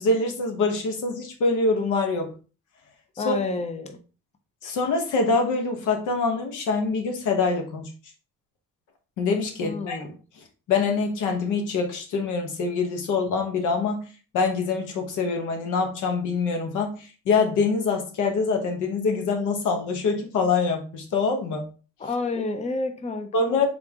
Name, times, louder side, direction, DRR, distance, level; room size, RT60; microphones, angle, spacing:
voice 1, 0.0-2.3 3.2-3.3 4.6-7.9 9.2-10.0 10.4-14.1 14.3-21.7 23.3-23.7, left 4 dB, 85° left, 1.1 m, -25 dB
voice 2, 3.2-4.0 9.6-10.1 22.0-23.7, left 3 dB, 20° left, 0.7 m, -30 dB
3.9 x 3.4 x 3.5 m
cardioid pair, 90°, 30 cm